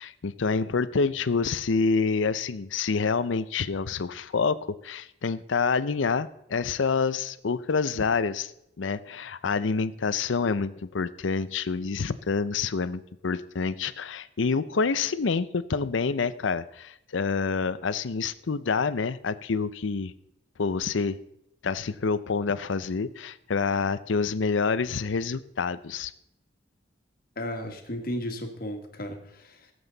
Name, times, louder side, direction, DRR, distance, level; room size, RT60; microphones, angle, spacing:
voice 1, 0.0-4.6 4.8-8.5 8.8-20.1 20.6-21.2 21.6-26.1, left 4 dB, 85° left, 15 dB, 0.6 m, -27 dB
voice 2, 27.3-29.7, equal, 50° left, 4 dB, 1.7 m, -34 dB
17.5 x 7.9 x 4.0 m, 0.80 s
head